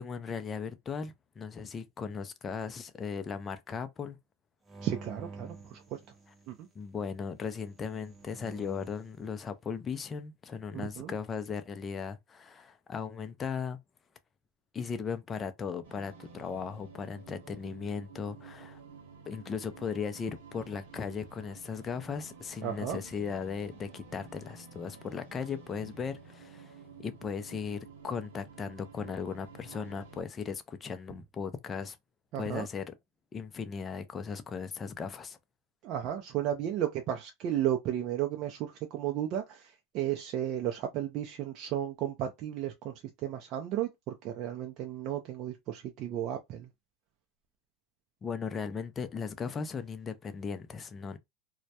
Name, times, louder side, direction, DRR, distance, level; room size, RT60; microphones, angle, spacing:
voice 1, 0.0-4.2 6.7-13.8 14.7-18.8 19.3-32.0 32.4-32.8 33.3-35.4 48.2-51.2, left 6 dB, 25° left, 0.4 m, -37 dB
sound 1, 4.7-6.6 7.6-9.1, right 3 dB, 15° right, 0.7 m, -48 dB
voice 2, 4.8-5.8 6.5-6.7 10.7-11.1 22.6-23.0 32.3-32.7 35.8-42.9 43.2-46.7, right 11 dB, 50° right, 0.4 m, -34 dB
sound 2, 15.8-30.2, right 5 dB, 85° right, 0.7 m, -52 dB
2.2 x 2.1 x 2.7 m
supercardioid pair, 120°, 0 cm